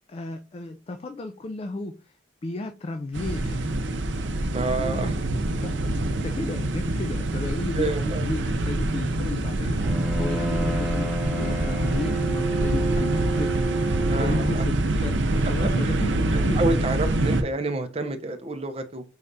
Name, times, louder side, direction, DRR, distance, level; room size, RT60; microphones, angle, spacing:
voice 1, 0.1-2.2 2.4-3.6 4.8-5.2 5.6-5.8 6.1-9.9 10.2-13.6 14.2-16.6, left 2 dB, 30° left, 0.3 m, -34 dB
sound 1, 3.1-17.4, right 2 dB, 85° right, 0.6 m, -25 dB
voice 2, 4.5-5.1 7.7-8.3 14.1-14.6 15.6-16.0 16.6-19.0, right 2 dB, 35° right, 0.6 m, -28 dB
Bowed string instrument, 9.8-14.7, right 2 dB, 5° right, 1.0 m, -30 dB
4.8 x 3.3 x 2.6 m
head